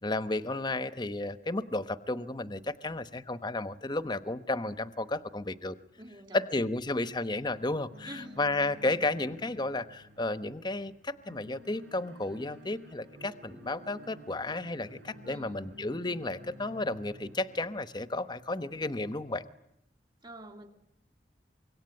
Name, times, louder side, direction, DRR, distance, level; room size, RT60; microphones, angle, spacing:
voice 1, 0.0-5.8 6.3-19.4, left 2 dB, 25° left, 12 dB, 1.0 m, -33 dB
voice 2, 6.0-6.6 8.0-8.4 15.2-15.6 20.2-20.7, right 1 dB, 25° right, 6 dB, 2.7 m, -47 dB
sound 1, 7.9-18.4, equal, 90° right, 5.4 m, -52 dB
25.5 x 23.0 x 9.6 m, 0.79 s
head